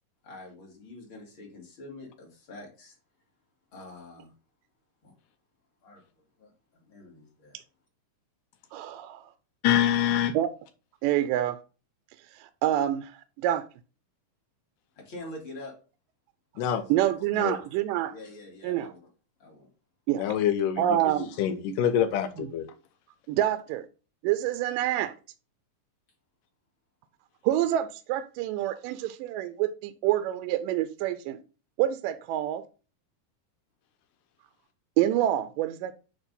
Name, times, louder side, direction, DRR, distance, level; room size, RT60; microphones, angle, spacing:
voice 1, 0.2-3.0 3.7-4.3 5.0-5.1 5.8-7.6 15.0-15.7 16.7-17.2 18.0-19.0 19.4-19.7, left 2 dB, 40° left, 2.8 m, -46 dB
voice 2, 8.7-9.2 10.3-10.5 11.0-11.6 12.4-13.1 13.4-13.6 16.9-18.1 18.6-18.9 20.1-20.2 20.8-21.4 22.4-22.5 23.3-23.9 24.2-25.1 27.4-31.4 31.8-32.6 35.0-35.9, right 12 dB, 80° right, 2.2 m, -27 dB
voice 3, 9.6-10.3 16.6-16.8 17.4-17.6 20.2-22.7, left 10 dB, 80° left, 2.2 m, -26 dB
9.0 x 3.3 x 5.3 m
omnidirectional pair, 3.9 m